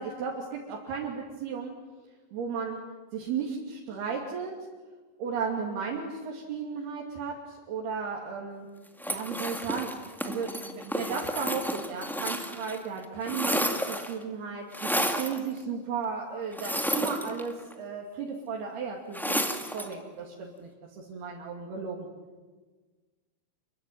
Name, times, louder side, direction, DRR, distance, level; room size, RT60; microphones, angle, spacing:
voice 1, 0.0-1.7 2.3-2.8 3.1-4.5 5.2-8.7 9.1-9.9 10.2-22.1, right 5 dB, 80° right, -2 dB, 4.8 m, -35 dB
sound 1, 9.0-12.8 13.0-14.2 14.7-15.4 16.5-17.7 19.1-19.9, equal, ahead, 0.4 m, -31 dB
27.5 x 23.0 x 9.4 m, 1.3 s
omnidirectional pair, 4.5 m